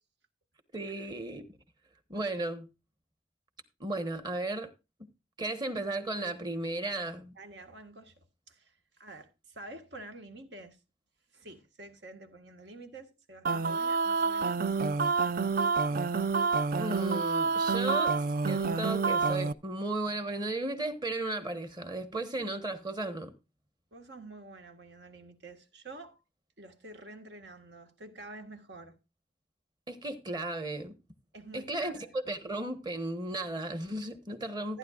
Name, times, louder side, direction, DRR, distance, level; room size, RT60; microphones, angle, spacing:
voice 1, 0.7-1.5 2.1-2.7 3.8-4.7 5.4-7.4 16.8-18.2 18.5-23.3 29.9-31.0 31.5-34.8, right 2 dB, 25° right, 1.2 m, -35 dB
voice 2, 7.3-10.8 11.3-15.4 23.9-26.2 26.6-29.0 31.3-32.1 34.7-34.8, right 2 dB, 75° right, 1.7 m, -49 dB
sound 1, 13.4-19.5, right 4 dB, 50° right, 0.4 m, -28 dB
15.0 x 9.7 x 2.5 m
head